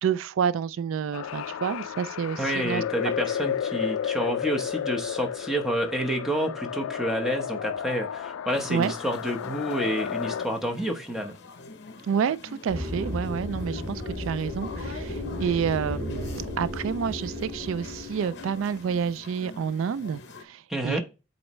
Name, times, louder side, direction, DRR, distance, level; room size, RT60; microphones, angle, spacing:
voice 1, 0.0-3.1 8.7-8.9 12.0-21.0, right 7 dB, 75° right, 0.3 m, -29 dB
sound 1, 1.1-10.5, left 8 dB, 90° left, 0.3 m, -32 dB
voice 2, 2.4-11.3 20.7-21.0, right 1 dB, ahead, 1.0 m, -29 dB
sound 2, 8.5-20.4, left 3 dB, 55° left, 0.8 m, -44 dB
sound 3, 12.7-19.3, left 1 dB, 25° right, 3.5 m, -35 dB
7.7 x 4.2 x 3.1 m
head